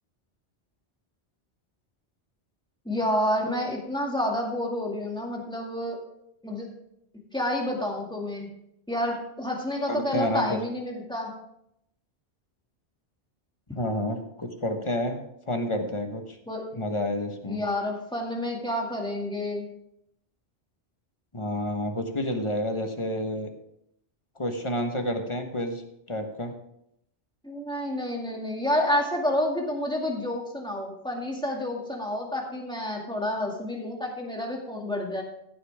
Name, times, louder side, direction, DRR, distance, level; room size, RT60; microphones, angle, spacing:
voice 1, 2.9-6.0 6.4-6.7 7.3-8.5 8.9-11.3 16.5-16.6 17.4-19.7 27.4-35.2, left 1 dB, 5° left, -1 dB, 2.2 m, -29 dB
voice 2, 9.9-10.6 13.8-15.2 15.5-16.4 16.7-17.6 21.3-23.5 24.4-25.8 26.1-26.5, left 1 dB, 30° left, 5 dB, 1.3 m, -29 dB
15.0 x 8.5 x 3.6 m, 0.77 s
omnidirectional pair, 1.1 m